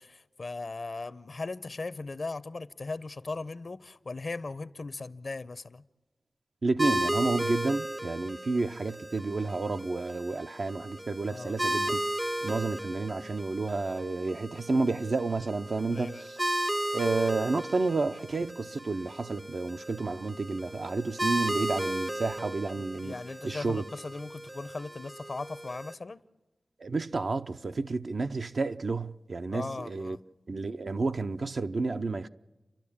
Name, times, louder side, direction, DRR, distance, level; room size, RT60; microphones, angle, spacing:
voice 1, 0.0-5.8 11.3-11.5 15.9-16.3 22.7-26.2 29.5-30.2, left 3 dB, 55° left, 0.6 m, -38 dB
voice 2, 6.6-12.0 12.4-16.4 16.9-23.2 23.4-23.8 26.8-30.2 30.5-32.3, right 3 dB, 65° right, 0.6 m, -30 dB
sound 1, 6.8-25.9, right 1 dB, 15° right, 0.6 m, -35 dB
30.0 x 12.0 x 8.6 m
wide cardioid pair, 80°, 0 cm